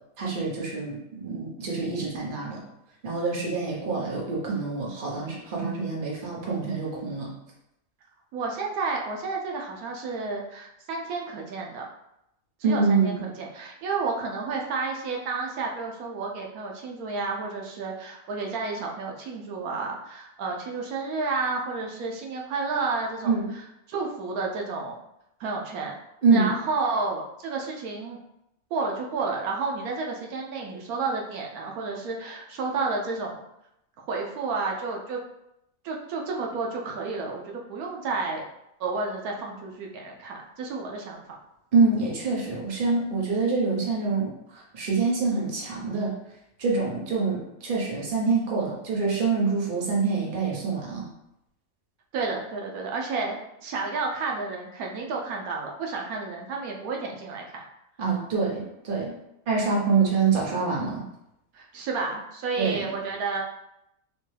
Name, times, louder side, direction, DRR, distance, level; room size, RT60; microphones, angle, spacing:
voice 1, 0.2-2.6 3.0-7.3 12.6-13.2 23.2-23.5 26.2-26.5 41.7-46.1 46.6-51.1 58.0-59.1 59.5-61.0 62.6-62.9, right 4 dB, 40° right, -4 dB, 1.1 m, -25 dB
voice 2, 8.3-11.8 12.6-23.3 23.9-25.0 25.4-25.9 26.3-28.2 28.7-33.4 34.1-35.2 35.8-38.5 38.8-41.2 52.1-57.6 61.5-63.4, right 4 dB, 85° right, 0 dB, 1.1 m, -31 dB
5.2 x 2.2 x 3.3 m, 0.83 s
omnidirectional pair, 1.5 m